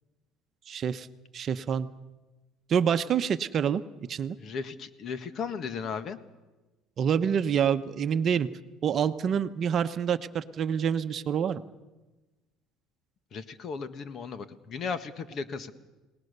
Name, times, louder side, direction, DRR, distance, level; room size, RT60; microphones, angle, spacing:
voice 1, 0.7-1.1 1.3-1.9 2.7-3.8 4.1-4.4 7.0-8.5 8.8-11.6, right 8 dB, 45° right, 10 dB, 1.0 m, -27 dB
voice 2, 4.4-6.2 13.3-15.7, left 5 dB, 45° left, 11 dB, 1.6 m, -36 dB
30.0 x 18.5 x 6.8 m, 1.2 s
cardioid pair, 110°, 0 cm